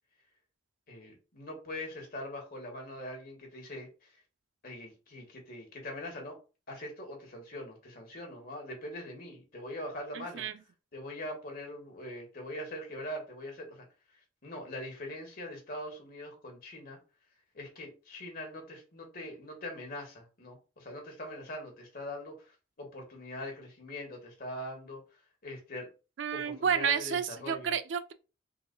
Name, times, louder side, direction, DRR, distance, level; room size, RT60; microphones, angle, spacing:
voice 1, 0.9-4.1 4.6-6.4 6.7-10.4 10.9-13.8 14.4-17.0 17.5-25.0 25.4-25.9 26.3-27.7, left 1 dB, 50° left, 1.6 m, -42 dB
voice 2, 10.1-10.5 26.2-28.1, right 7 dB, 75° right, 0.4 m, -31 dB
4.4 x 4.0 x 2.3 m
head